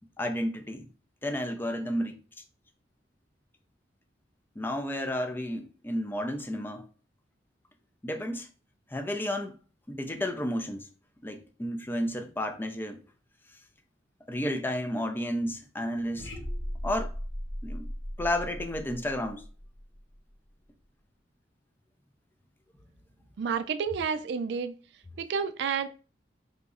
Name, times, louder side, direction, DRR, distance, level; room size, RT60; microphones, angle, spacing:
voice 1, 0.2-0.9 1.2-2.2 4.6-6.9 8.0-8.5 8.9-9.6 9.9-10.9 11.2-13.0 14.3-16.3 16.8-17.2 17.6-17.9 18.2-19.4, left 1 dB, 10° left, 0.4 m, -32 dB
sound 1, 16.2-20.3, equal, 85° left, 1.2 m, -37 dB
voice 2, 23.4-24.7 25.2-25.9, right 6 dB, 70° right, 0.3 m, -30 dB
3.7 x 2.0 x 3.6 m
head